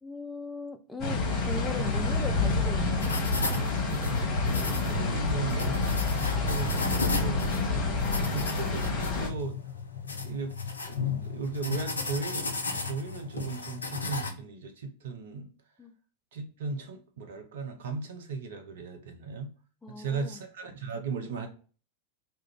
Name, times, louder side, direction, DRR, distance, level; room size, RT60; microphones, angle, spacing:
voice 1, 0.0-3.1 15.8-15.9 19.8-20.4, left 3 dB, 10° left, 0.3 m, -39 dB
sound 1, 1.0-9.3, left 3 dB, 35° left, 0.9 m, -28 dB
sound 2, 3.0-14.3, left 4 dB, 75° left, 0.4 m, -35 dB
voice 2, 4.6-5.8 6.4-7.5 8.3-9.6 10.2-12.6 12.9-15.5 16.3-19.5 19.9-21.5, right 4 dB, 60° right, 0.5 m, -36 dB
2.3 x 2.1 x 3.1 m
figure-of-eight pair, 90°, 0 cm